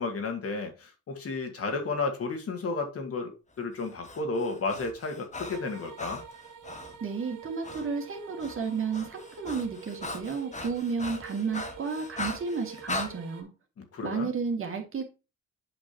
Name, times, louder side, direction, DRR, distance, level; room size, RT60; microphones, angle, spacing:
voice 1, 0.0-6.2 13.8-14.3, left 3 dB, 50° left, 2.1 m, -32 dB
Breathing, 3.8-7.0 7.6-7.9 8.2-13.1, left 2 dB, 25° left, 1.6 m, -39 dB
sound 1, 5.4-13.4, right 8 dB, 85° right, 1.6 m, -47 dB
voice 2, 7.0-13.5 14.0-15.1, right 5 dB, 45° right, 2.3 m, -32 dB
8.4 x 5.0 x 2.9 m
cardioid pair, 90°, 30 cm